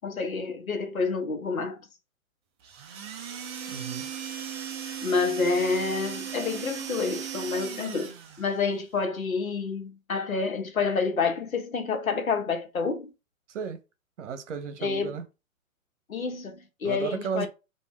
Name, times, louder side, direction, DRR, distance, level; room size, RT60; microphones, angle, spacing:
voice 1, 0.0-1.8 4.8-13.1 14.8-15.2 16.1-17.5, left 4 dB, 85° left, 1.2 m, -28 dB
sound 1, 2.6-8.5, right 9 dB, 20° right, 0.5 m, -37 dB
voice 2, 3.7-4.1 13.5-13.8 14.2-15.3 16.8-17.5, right 6 dB, 60° right, 1.0 m, -34 dB
3.6 x 2.6 x 4.4 m
hypercardioid pair, 135°, 41 cm